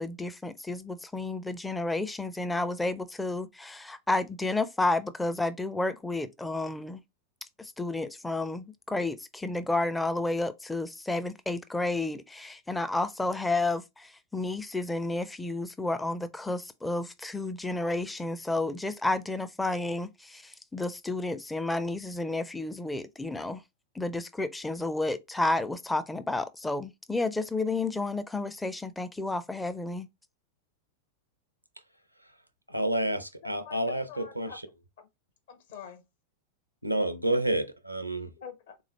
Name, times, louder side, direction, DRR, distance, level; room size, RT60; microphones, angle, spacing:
voice 1, 0.0-7.0 7.6-23.6 23.9-30.1, left 2 dB, 5° left, 0.4 m, -31 dB
voice 2, 32.7-34.5 36.8-38.3, right 1 dB, 90° right, 0.5 m, -29 dB
voice 3, 33.4-34.6 35.0-35.1 35.5-36.0 38.4-38.8, left 7 dB, 55° left, 1.0 m, -46 dB
3.8 x 3.1 x 3.0 m
figure-of-eight pair, 90°, 0 cm